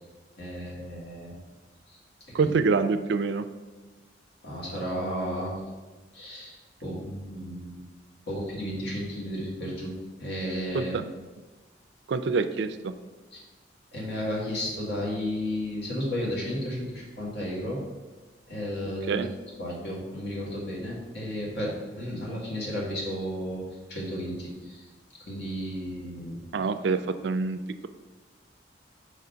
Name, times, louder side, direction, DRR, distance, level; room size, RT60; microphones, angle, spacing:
voice 1, 0.4-1.4 1.9-2.0 2.4-2.5 4.4-5.6 6.1-6.5 6.8-7.8 8.3-11.1 13.3-13.4 13.9-17.8 18.5-23.6 23.9-24.9 25.2-26.7, equal, 60° left, -4 dB, 1.7 m, -33 dB
voice 2, 2.3-3.5 10.7-11.0 12.1-12.9 19.1-19.3 26.5-27.9, right 4 dB, 65° right, 11 dB, 0.3 m, -26 dB
5.0 x 3.9 x 5.5 m, 1.2 s
head